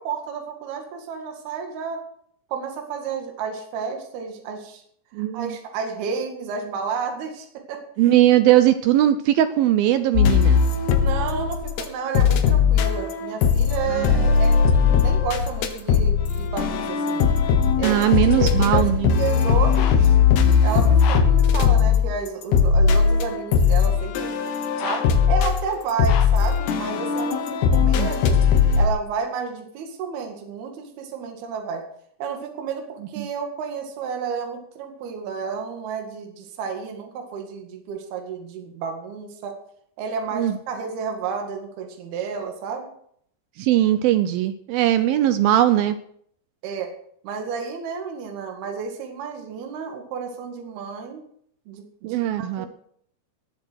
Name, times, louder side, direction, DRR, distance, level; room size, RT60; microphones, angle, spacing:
voice 1, 0.0-2.0 2.5-4.8 5.3-7.8 11.0-17.3 17.8-18.1 18.4-20.2 20.6-24.3 24.8-28.4 28.8-31.8 32.2-39.5 40.0-42.9 46.6-46.9 47.2-51.2 51.7-52.7, right 6 dB, 65° right, 3 dB, 3.8 m, -31 dB
voice 2, 5.1-5.6 8.0-10.6 13.9-14.3 17.8-19.1 27.9-28.1 33.2-33.3 40.3-40.6 43.6-46.0 52.0-52.7, right 12 dB, 85° right, 10 dB, 2.1 m, -20 dB
sound 1, 10.2-11.9 12.2-28.9, left 6 dB, 75° left, 3.2 m, -19 dB
19.5 x 7.5 x 6.3 m, 0.66 s
omnidirectional pair, 5.1 m